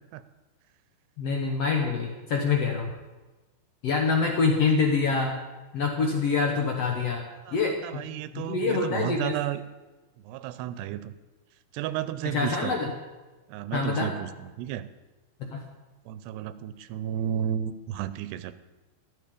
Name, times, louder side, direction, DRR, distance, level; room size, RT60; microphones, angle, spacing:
voice 1, 1.2-2.9 3.8-5.4 5.7-8.1 8.3-9.3 12.2-12.9 13.7-14.1 15.4-15.6, left 4 dB, 80° left, 2 dB, 1.4 m, -26 dB
voice 2, 7.5-9.6 10.2-11.1 11.7-12.8 13.5-14.9 16.1-18.5, right 10 dB, 85° right, 13 dB, 2.7 m, -33 dB
13.5 x 13.5 x 5.2 m, 1.2 s
omnidirectional pair, 4.8 m